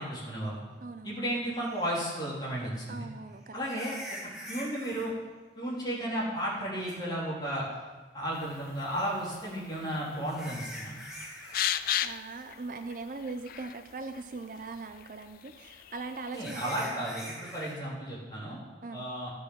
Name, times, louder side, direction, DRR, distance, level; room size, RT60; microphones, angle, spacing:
voice 1, 0.0-0.6 1.0-3.1 3.5-4.0 4.5-5.1 5.6-7.6 8.1-10.9 16.3-18.6 18.9-19.3, right 1 dB, 25° left, -6 dB, 3.6 m, -33 dB
voice 2, 0.8-1.2 2.9-3.6 12.0-17.0 18.8-19.0, right 3 dB, 50° right, 8 dB, 0.5 m, -40 dB
sound 1, 1.8-1.9 3.6-5.1 6.9-7.0 9.5-11.7 12.0-12.3 12.7-12.8 13.4-13.5 16.3-17.8, equal, ahead, 1.8 m, -44 dB
sound 2, 8.3-16.5, left 11 dB, 50° left, 0.3 m, -38 dB
13.5 x 6.5 x 6.4 m, 1.3 s
head